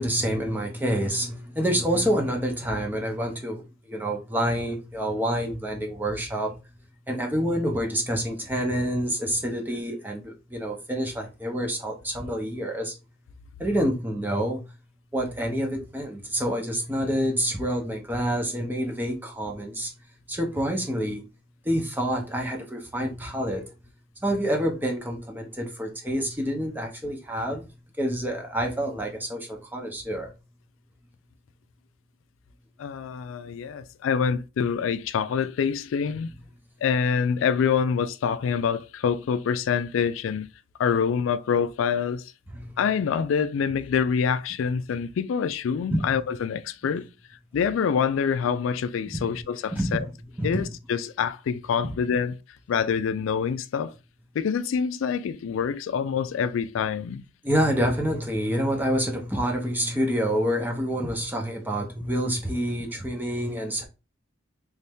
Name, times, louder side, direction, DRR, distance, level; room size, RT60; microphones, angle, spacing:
voice 1, 0.0-6.6 7.1-12.9 13.6-14.7 15.1-19.9 20.3-21.2 21.6-23.7 24.2-27.7 28.0-30.3 42.5-42.8 45.8-46.2 49.1-49.4 49.7-50.1 50.4-50.7 51.8-52.0 57.4-63.8, equal, 10° right, 0.8 m, -27 dB
voice 2, 32.8-36.3 36.8-40.5 40.8-42.3 42.8-47.1 47.5-50.0 50.4-50.6 50.9-52.3 52.7-53.9 54.3-57.2, left 7 dB, 85° left, 0.3 m, -26 dB
3.2 x 2.7 x 3.4 m
head